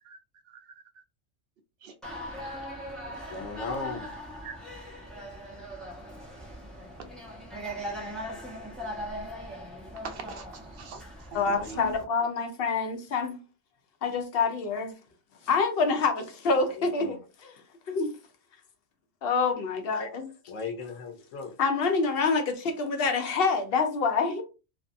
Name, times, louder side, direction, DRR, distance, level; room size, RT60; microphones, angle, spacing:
sound 1, 2.0-12.0, equal, ahead, 0.4 m, -40 dB
voice 1, 3.0-4.1 11.6-11.9 16.7-17.2 20.5-21.5, left 4 dB, 90° left, 0.9 m, -37 dB
voice 2, 10.0-11.9, right 3 dB, 60° right, 0.7 m, -43 dB
voice 3, 11.3-13.4 14.0-14.9 15.5-17.2 17.4-17.5 17.9-18.1 19.2-20.3 21.6-24.4, left 4 dB, 60° left, 0.7 m, -26 dB
2.6 x 2.4 x 2.4 m
omnidirectional pair, 1.3 m